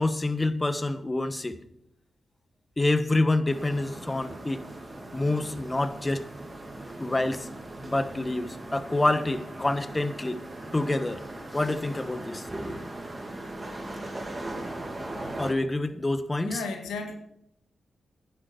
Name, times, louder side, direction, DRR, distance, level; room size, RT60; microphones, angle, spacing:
voice 1, 0.0-1.6 2.8-4.6 5.1-6.2 7.0-7.5 7.8-10.4 10.7-11.2 11.5-12.5 15.4-16.6, left 2 dB, 25° left, 11 dB, 1.3 m, -27 dB
sound 1, 3.5-15.5, right 1 dB, 25° right, 3.2 m, -39 dB
voice 2, 16.4-17.1, left 4 dB, 90° left, 5 dB, 1.8 m, -33 dB
11.5 x 10.0 x 4.5 m, 0.80 s
supercardioid pair, 50°, 0 cm